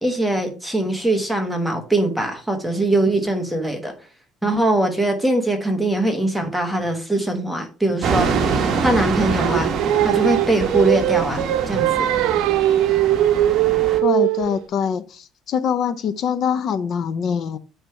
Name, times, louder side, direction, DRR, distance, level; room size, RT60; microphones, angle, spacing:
voice 1, 0.0-3.9 4.4-8.5 8.8-9.7 10.0-12.1, right 1 dB, ahead, 1.1 m, -22 dB
sound 1, 8.0-14.0, right 5 dB, 45° right, 1.1 m, -25 dB
Singing, 9.4-14.6, right 13 dB, 80° right, 0.6 m, -20 dB
voice 2, 14.0-17.6, left 7 dB, 45° left, 0.5 m, -24 dB
8.9 x 3.2 x 4.7 m
cardioid pair, 160°, 0 cm